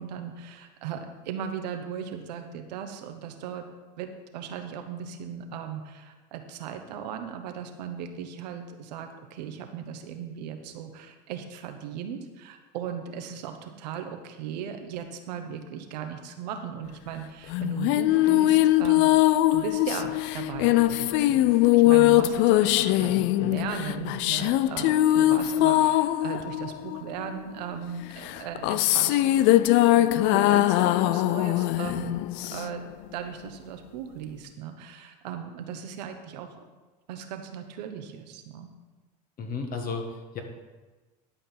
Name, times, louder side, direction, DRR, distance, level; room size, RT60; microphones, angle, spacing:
voice 1, 0.0-3.6 4.0-29.7 29.9-32.2 32.5-36.5 37.1-38.7, right 8 dB, 85° right, 6 dB, 1.2 m, -37 dB
sound 1, 17.5-27.4 28.2-32.9, left 15 dB, 60° left, 0.4 m, -22 dB
voice 2, 39.4-40.4, left 4 dB, 45° left, 3 dB, 1.8 m, -33 dB
11.5 x 5.3 x 5.8 m, 1.3 s
supercardioid pair, 100°, 21 cm